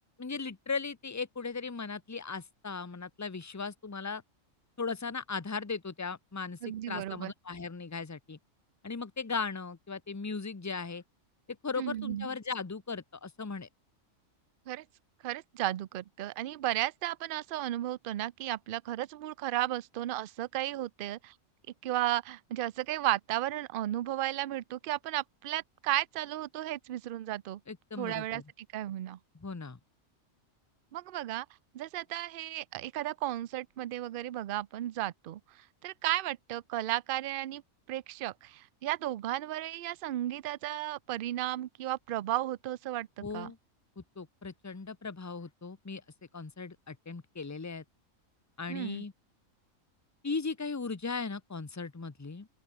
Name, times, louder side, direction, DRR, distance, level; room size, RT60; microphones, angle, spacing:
voice 1, 0.2-4.2 4.8-6.6 6.9-8.4 8.8-11.0 11.6-13.7 27.7-28.4 29.3-29.8 43.2-43.6 44.0-46.0 46.3-47.8 48.6-49.1 50.2-52.5, left 4 dB, 20° left, 0.6 m, -37 dB
voice 2, 6.6-7.3 11.8-12.3 14.7-14.8 15.2-21.3 21.8-27.6 28.0-29.2 30.9-31.5 31.7-35.4 35.8-37.6 37.9-43.1 43.3-43.5 48.7-49.0, right 14 dB, 60° right, 0.5 m, -34 dB
open air
omnidirectional pair, 1.4 m